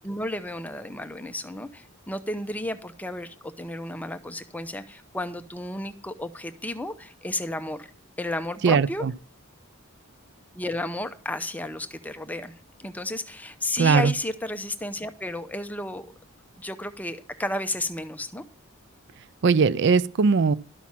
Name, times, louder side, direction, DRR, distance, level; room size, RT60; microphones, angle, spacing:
voice 1, 0.0-7.9 8.2-9.0 10.5-16.1 16.6-18.4, left 1 dB, 5° left, 0.6 m, -33 dB
voice 2, 8.6-9.1 13.8-14.1 19.4-20.5, right 5 dB, 55° right, 0.4 m, -20 dB
12.5 x 5.9 x 7.4 m
head